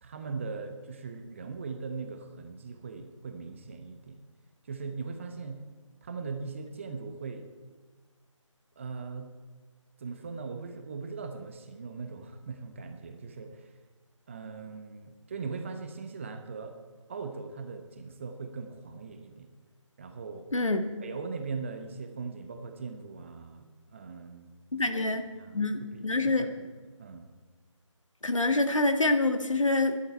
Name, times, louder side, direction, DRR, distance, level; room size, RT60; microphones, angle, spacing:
voice 1, 0.0-4.2 4.7-5.6 6.0-7.5 8.8-9.3 10.0-13.7 14.3-16.7 17.1-19.5 20.0-20.5 21.0-24.5 24.8-25.0 25.4-26.7 27.0-27.3, right 4 dB, 25° right, 6 dB, 1.0 m, -40 dB
voice 2, 20.5-20.9 24.7-25.3 25.5-26.4 28.2-29.9, left 2 dB, 75° left, 7 dB, 1.8 m, -26 dB
19.0 x 11.5 x 4.5 m, 1.4 s
figure-of-eight pair, 155°, 17 cm